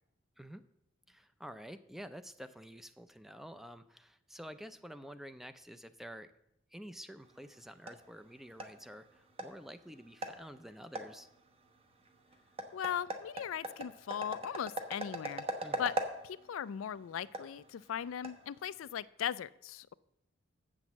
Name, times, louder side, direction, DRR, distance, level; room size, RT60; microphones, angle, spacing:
voice 1, 1.1-6.3 6.7-11.3 15.6-15.9, equal, ahead, 11 dB, 0.4 m, -49 dB
sound 1, 7.2-19.0, right 2 dB, 30° right, 1.0 m, -43 dB
voice 2, 12.7-15.5 15.8-15.9 16.2-19.9, left 9 dB, 90° left, 17 dB, 0.4 m, -38 dB
7.9 x 6.2 x 7.2 m, 0.79 s
head